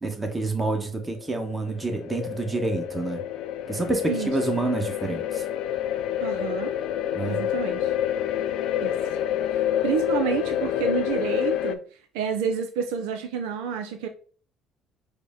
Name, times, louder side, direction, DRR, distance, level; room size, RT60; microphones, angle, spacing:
voice 1, 0.0-3.2 3.7-5.4 7.1-7.4, right 3 dB, 20° right, 1.1 m, -28 dB
sound 1, 1.0-11.7, left 10 dB, 75° left, 0.3 m, -28 dB
voice 2, 4.1-4.6 6.2-6.7 7.3-7.9 8.8-8.9 9.8-11.8 12.1-14.1, right 7 dB, 85° right, 0.4 m, -29 dB
5.0 x 2.1 x 3.6 m
supercardioid pair, 70°, 0 cm